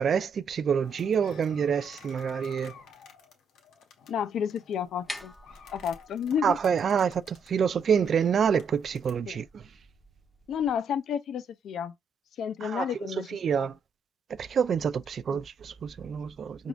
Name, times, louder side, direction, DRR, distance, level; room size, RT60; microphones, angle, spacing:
voice 1, 0.0-2.7 6.4-9.6 12.6-12.9 13.3-13.8 14.4-16.7, right 7 dB, 55° right, 0.4 m, -27 dB
sound 1, 0.8-9.2, left 6 dB, 85° left, 1.2 m, -53 dB
voice 2, 4.1-5.3 5.7-6.6 9.3-9.4 10.5-11.9 12.4-13.3 13.5-13.7 15.3-15.4 16.6-16.7, left 8 dB, 70° left, 0.5 m, -31 dB
sound 2, 4.8-10.8, left 1 dB, 10° left, 0.7 m, -48 dB
4.9 x 3.6 x 2.4 m
cardioid pair, 90°, 0 cm